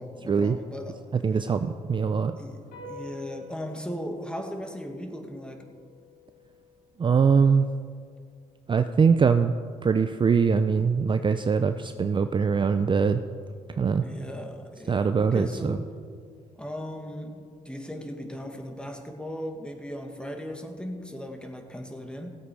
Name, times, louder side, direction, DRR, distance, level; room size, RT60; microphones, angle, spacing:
voice 1, 0.0-1.1 2.4-5.7 13.9-16.0 16.6-22.3, equal, 5° left, 3 dB, 1.9 m, -37 dB
voice 2, 1.2-2.4 7.0-7.7 8.7-9.5 9.8-13.2 13.7-14.1 14.9-15.8, right 5 dB, 35° right, 9 dB, 0.5 m, -22 dB
sound 1, 2.7-9.4, left 3 dB, 85° left, 2.8 m, -50 dB
16.5 x 8.1 x 4.9 m, 2.1 s
supercardioid pair, 65°, 15 cm